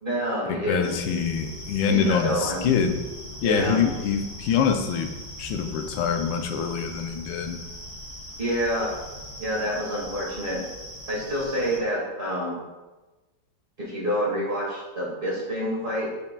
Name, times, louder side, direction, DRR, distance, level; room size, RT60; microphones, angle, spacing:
voice 1, 0.0-0.9 1.9-2.6 3.4-3.8 8.4-8.9 9.4-10.6 11.1-12.6 13.8-16.1, equal, 30° right, -4 dB, 1.9 m, -27 dB
voice 2, 0.7-3.0 3.4-7.6, left 7 dB, 80° left, 6 dB, 1.4 m, -25 dB
sound 1, 0.8-11.8, left 1 dB, 35° left, 1.8 m, -40 dB
8.1 x 5.6 x 2.2 m, 1.2 s
omnidirectional pair, 2.1 m